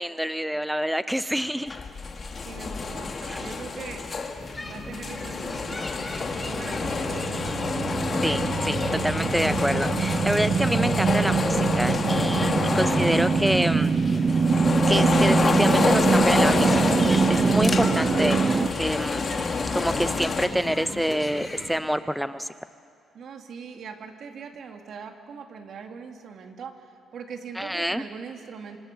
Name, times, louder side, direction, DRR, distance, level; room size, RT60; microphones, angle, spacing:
voice 1, 0.0-1.8 3.3-3.4 8.2-8.8 9.0-13.9 14.9-19.4 19.7-22.5 27.6-28.0, equal, ahead, 12 dB, 0.6 m, -27 dB
sound 1, 1.7-20.5, left 4 dB, 40° left, 2.2 m, -28 dB
voice 2, 2.4-4.1 4.6-5.8 6.4-7.3 19.2-19.5 23.1-28.8, right 6 dB, 65° right, 4 dB, 2.6 m, -41 dB
sound 2, 4.4-21.8, left 2 dB, 15° left, 3.2 m, -38 dB
sound 3, 6.1-18.7, right 5 dB, 40° right, 1.0 m, -24 dB
26.0 x 25.5 x 6.8 m, 2.4 s
cardioid pair, 90°, 0 cm